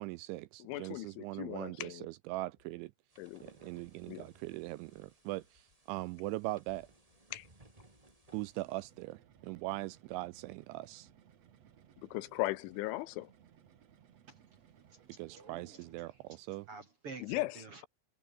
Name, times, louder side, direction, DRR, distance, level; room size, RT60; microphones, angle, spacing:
voice 1, 0.0-2.9 3.4-6.9 8.3-11.1 15.2-16.7, right 19 dB, 85° right, 2.8 m, -41 dB
voice 2, 0.6-2.1 3.2-3.4 4.1-4.3 7.3-7.5 12.0-13.3 17.2-17.5, left 18 dB, 80° left, 3.0 m, -37 dB
sound 1, 2.3-2.7 3.3-3.5 4.0-4.1 4.5-4.9 5.4-5.8 6.2-6.3 6.8-7.2 7.8-8.3 8.8-9.5 10.1-11.2, left 4 dB, 45° left, 8.9 m, -72 dB
sound 2, 3.1-9.0, right 2 dB, 20° right, 1.0 m, -63 dB
sound 3, 8.4-16.5, right 9 dB, 70° right, 1.5 m, -63 dB
voice 3, 14.8-16.4 16.7-17.8, right 4 dB, 45° right, 2.0 m, -51 dB
omnidirectional pair, 5.8 m